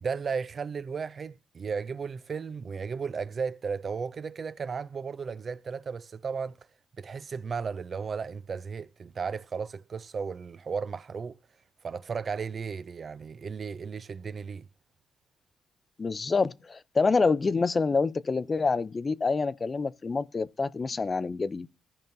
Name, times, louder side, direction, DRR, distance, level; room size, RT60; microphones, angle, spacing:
voice 1, 0.0-6.6 7.0-11.4 11.8-14.7, right 5 dB, 45° right, 0.3 m, -35 dB
voice 2, 16.0-21.7, left 4 dB, 30° left, 0.4 m, -27 dB
15.0 x 5.3 x 2.6 m
cardioid pair, 90°, 0 cm